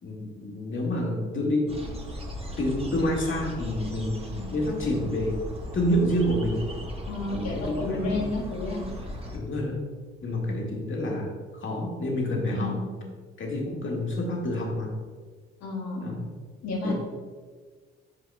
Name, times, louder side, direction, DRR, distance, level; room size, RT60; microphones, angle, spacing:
voice 1, 0.0-1.7 2.6-5.4 5.7-6.6 7.3-8.3 9.3-9.8 10.2-12.8 13.4-14.9 16.0-16.3 16.8-16.9, left 1 dB, 40° left, -1 dB, 1.9 m, -28 dB
sound 1, 1.7-9.4, left 1 dB, 20° right, 1.3 m, -37 dB
voice 2, 7.1-8.9 12.5-12.9 15.6-16.1 16.6-16.9, left 2 dB, 60° left, -2 dB, 1.7 m, -31 dB
11.0 x 4.7 x 2.3 m, 1.5 s
hypercardioid pair, 50°, 31 cm